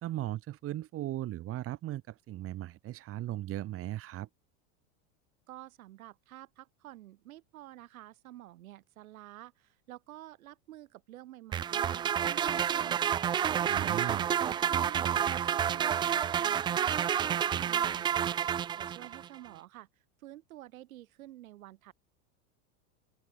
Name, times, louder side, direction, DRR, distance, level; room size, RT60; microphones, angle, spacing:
voice 1, 0.0-4.3 13.7-14.3 19.0-19.1, right 14 dB, 35° right, 1.8 m, -37 dB
voice 2, 5.5-13.3 13.7-19.9 20.2-21.9, right 15 dB, 85° right, 7.3 m, -50 dB
sound 1, 11.5-19.3, right 9 dB, 15° right, 0.3 m, -29 dB
open air
supercardioid pair, 135°, 41 cm